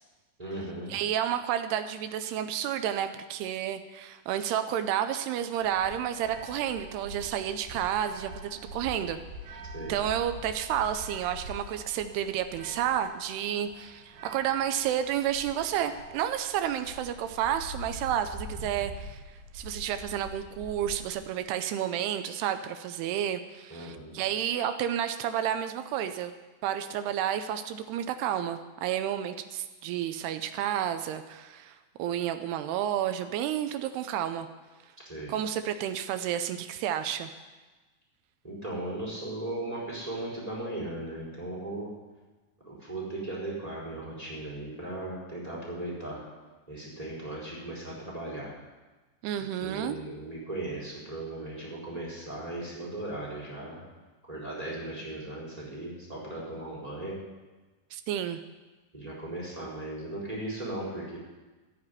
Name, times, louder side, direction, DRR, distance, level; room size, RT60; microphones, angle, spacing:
voice 1, 0.4-0.9 9.7-9.9 23.7-24.2 35.0-35.3 38.4-41.9 42.6-46.2 46.7-48.5 49.6-53.8 54.3-57.2 58.9-61.2, right 1 dB, 10° right, -5 dB, 3.8 m, -37 dB
voice 2, 0.9-9.2 9.9-19.2 19.5-26.3 26.6-34.5 35.3-37.3 49.2-50.0 57.9-58.4, right 10 dB, 80° right, 9 dB, 2.4 m, -31 dB
sound 1, 5.6-21.4, right 1 dB, 60° right, 3.3 m, -44 dB
14.0 x 6.9 x 9.6 m, 1.2 s
omnidirectional pair, 5.3 m